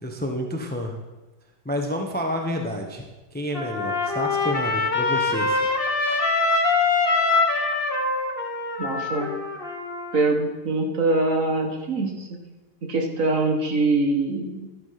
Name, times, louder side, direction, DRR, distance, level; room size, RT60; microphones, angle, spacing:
voice 1, 0.0-0.9 1.6-3.0 3.3-5.6, equal, 5° left, 2 dB, 0.8 m, -29 dB
Trumpet, 3.5-10.2, left 3 dB, 35° left, 1.3 m, -24 dB
voice 2, 8.8-9.3 10.1-12.3 12.8-14.7, right 2 dB, 50° right, 2 dB, 2.0 m, -23 dB
13.0 x 8.1 x 5.9 m, 1.1 s
omnidirectional pair, 1.9 m